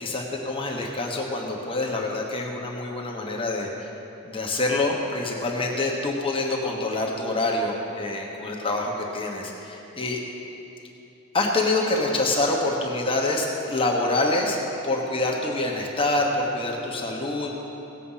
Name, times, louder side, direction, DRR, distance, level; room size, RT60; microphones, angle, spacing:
voice 1, 0.0-3.7 4.2-10.2 11.3-14.6 14.8-17.7, left 2 dB, 25° left, -1 dB, 1.2 m, -26 dB
18.0 x 7.6 x 5.7 m, 3.0 s
head